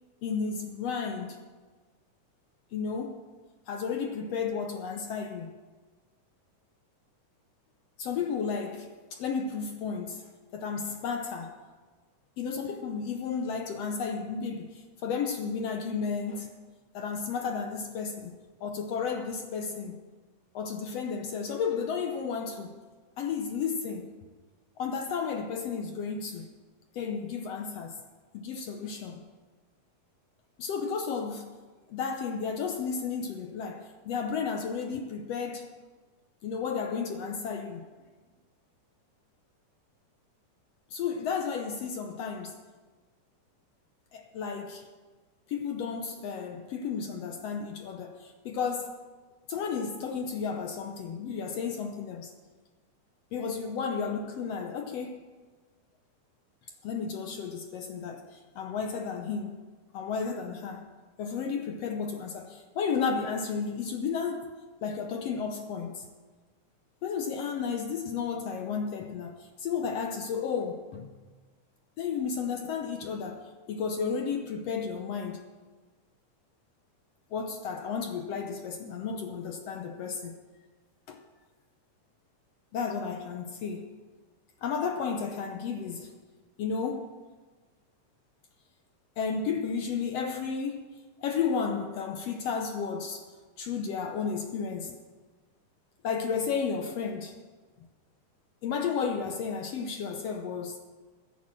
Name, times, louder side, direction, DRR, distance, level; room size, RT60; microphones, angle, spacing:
voice 1, 0.2-1.4 2.7-3.2 3.7-5.5 8.0-11.6 12.4-16.5 16.9-18.3 18.6-20.0 20.5-22.8 23.2-24.1 24.8-26.5 26.9-28.0 28.3-29.2 30.6-31.5 31.9-35.7 36.4-37.9 40.9-42.6 44.1-44.9 45.5-49.0 49.5-52.3 53.3-55.2 56.8-59.6 59.9-60.9 61.2-64.5 64.8-66.1 67.0-71.2 72.0-75.5 77.3-80.4 81.1-81.2 82.7-83.9 84.6-86.1 86.6-87.1 89.2-90.9 91.2-93.3 93.6-94.9 96.0-97.4 98.6-100.8, left 6 dB, 70° left, 1.6 m, -33 dB
11.5 x 10.5 x 7.5 m
omnidirectional pair, 3.6 m